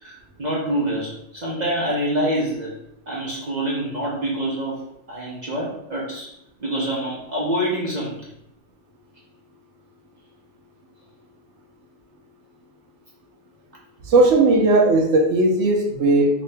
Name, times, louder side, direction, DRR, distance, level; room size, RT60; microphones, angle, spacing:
voice 1, 0.0-2.7 3.1-6.3 6.6-8.3, right 1 dB, 50° right, -5 dB, 0.5 m, -26 dB
voice 2, 14.1-16.3, right 2 dB, 70° right, 0 dB, 0.9 m, -17 dB
2.9 x 2.7 x 3.2 m, 0.77 s
omnidirectional pair, 1.4 m